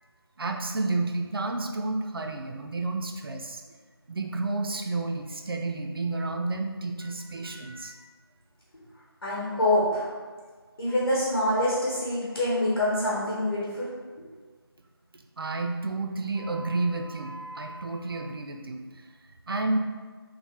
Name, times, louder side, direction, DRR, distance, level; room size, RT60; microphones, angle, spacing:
voice 1, 0.4-3.6 4.1-8.0 10.9-11.0 15.4-18.8 19.5-19.8, right 2 dB, 65° right, 4 dB, 0.4 m, -31 dB
voice 2, 9.2-10.1 10.8-13.9, left 1 dB, 60° left, -8 dB, 0.9 m, -25 dB
3.1 x 2.1 x 3.1 m, 1.5 s
figure-of-eight pair, 170°, 13 cm